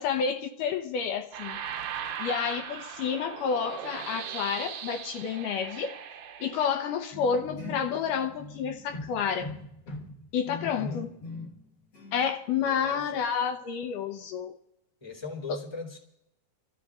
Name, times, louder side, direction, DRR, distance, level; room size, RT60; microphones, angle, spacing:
voice 1, 0.0-1.6 2.2-5.9 6.4-9.6 10.3-11.1 12.1-14.6, left 7 dB, 85° left, 2.5 m, -30 dB
sound 1, 1.3-7.0, right 9 dB, 80° right, 1.4 m, -39 dB
sound 2, 7.1-11.7 11.9-12.3, left 2 dB, 45° left, 1.5 m, -41 dB
voice 2, 10.7-11.1 12.5-13.2 15.0-16.0, left 3 dB, 10° left, 2.2 m, -39 dB
28.5 x 13.5 x 2.5 m
omnidirectional pair, 3.6 m